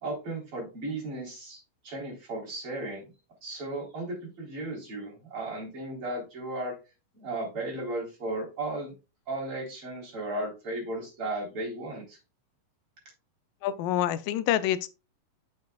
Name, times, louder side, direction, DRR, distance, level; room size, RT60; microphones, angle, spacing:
voice 1, 0.0-3.1 3.4-6.8 7.2-8.9 9.3-12.2, right 2 dB, 40° right, 4.3 m, -35 dB
voice 2, 13.6-14.9, left 11 dB, 85° left, 2.2 m, -27 dB
8.8 x 7.3 x 2.3 m
omnidirectional pair, 3.9 m